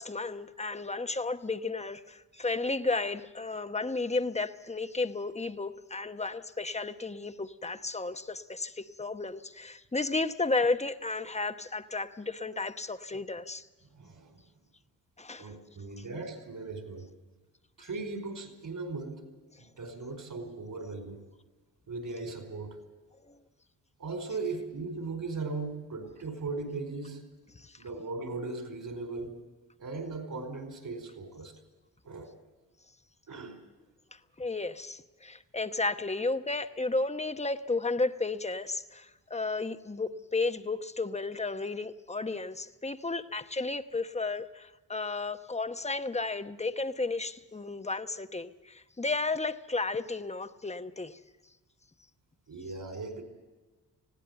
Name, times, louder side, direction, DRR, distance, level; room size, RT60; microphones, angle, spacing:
voice 1, 0.0-13.7 15.2-15.5 16.0-16.1 23.3-23.4 27.5-27.8 34.1-51.2, left 3 dB, 20° left, 9 dB, 1.0 m, -33 dB
voice 2, 13.9-14.4 15.4-17.1 17.8-19.2 19.6-21.2 21.9-22.8 24.0-27.2 27.8-29.3 29.8-31.5 32.0-32.3 33.3-33.6 52.5-53.2, right 3 dB, 60° right, 5 dB, 4.8 m, -38 dB
20.0 x 16.0 x 8.0 m, 1.2 s
cardioid pair, 70°, 36 cm